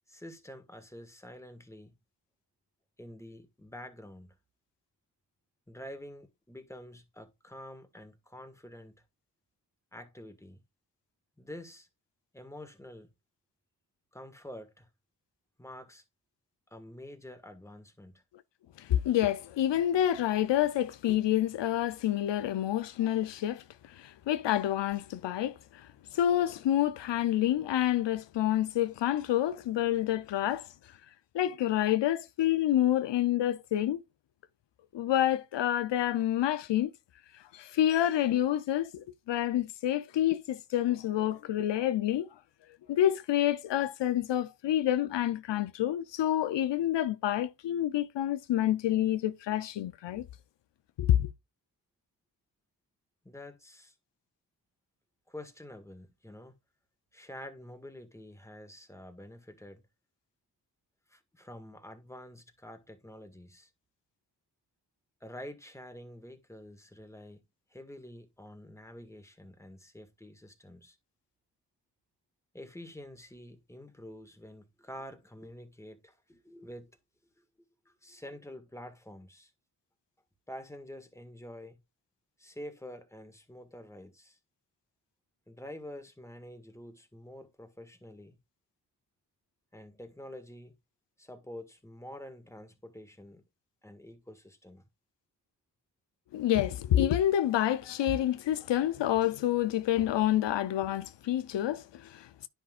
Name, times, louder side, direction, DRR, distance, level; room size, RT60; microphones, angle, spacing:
voice 1, 0.1-1.9 3.0-4.4 5.7-9.0 9.9-10.6 11.4-11.9 12.3-13.1 14.1-14.9 15.6-16.0 16.7-18.2 53.2-53.9 55.3-56.5 57.1-59.8 61.1-63.7 65.2-67.4 67.7-71.0 72.5-76.9 77.4-77.5 77.9-79.5 80.5-81.8 82.4-84.4 85.5-88.4 89.7-90.7 91.2-93.4 93.8-94.8, left 1 dB, 5° left, 1.7 m, -47 dB
voice 2, 18.8-30.7 31.3-34.0 34.9-36.9 37.3-42.3 42.9-50.2 51.0-51.3 96.3-102.5, left 12 dB, 85° left, 0.6 m, -28 dB
10.0 x 5.7 x 2.4 m
cardioid pair, 60°, 42 cm